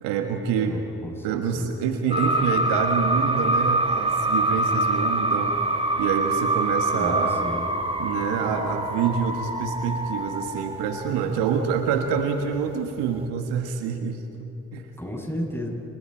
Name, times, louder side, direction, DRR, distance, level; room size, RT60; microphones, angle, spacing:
voice 1, 0.0-0.8 1.2-5.5 6.0-7.3 8.0-14.9, right 6 dB, 75° right, 5 dB, 1.5 m, -26 dB
voice 2, 0.6-1.7 6.9-7.7 15.0-15.7, equal, 5° left, 0 dB, 7.0 m, -33 dB
sound 1, 2.1-11.7 12.0-12.7 13.0-13.2, right 2 dB, 15° right, 2.7 m, -25 dB
28.5 x 24.0 x 4.5 m, 2.7 s
hypercardioid pair, 45°, 41 cm